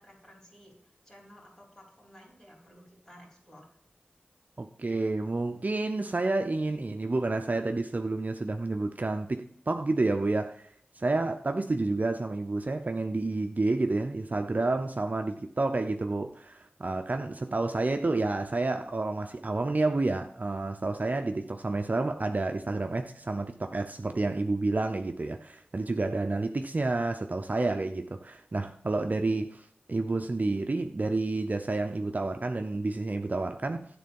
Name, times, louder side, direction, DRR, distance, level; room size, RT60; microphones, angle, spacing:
voice 1, 0.0-3.7, equal, 15° left, 3.4 m, -54 dB
voice 2, 4.6-10.6 11.0-33.9, right 2 dB, 50° right, 0.5 m, -29 dB
9.1 x 3.8 x 5.2 m
wide cardioid pair, 45°, 4 cm